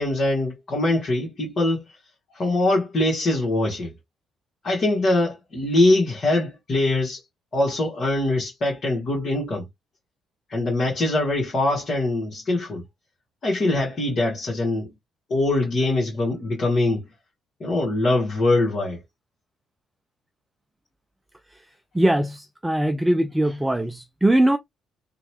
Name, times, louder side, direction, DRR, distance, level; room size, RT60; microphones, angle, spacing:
voice 1, 0.0-1.8 2.3-3.9 4.6-7.2 7.5-9.7 10.5-12.8 13.4-14.9 15.3-17.1 17.6-19.0, left 2 dB, 45° left, 1.3 m, -23 dB
voice 2, 21.9-24.6, right 1 dB, 10° right, 0.3 m, -21 dB
2.8 x 2.2 x 3.0 m
figure-of-eight pair, 45°, 0 cm